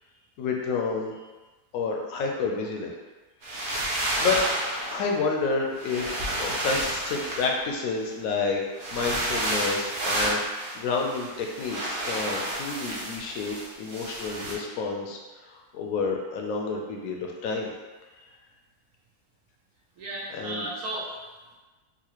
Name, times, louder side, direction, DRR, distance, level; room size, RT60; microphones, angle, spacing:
voice 1, 0.4-1.1 1.7-2.9 3.7-4.5 4.9-10.4 10.7-17.7 20.3-20.6, left 4 dB, 70° left, 1 dB, 0.9 m, -30 dB
sound 1, 3.4-5.0 5.8-8.0 8.8-14.5, right 1 dB, 50° right, 0.6 m, -30 dB
voice 2, 20.0-21.5, right 1 dB, 75° right, -5 dB, 1.1 m, -35 dB
4.1 x 2.4 x 2.9 m, 1.3 s
omnidirectional pair, 1.7 m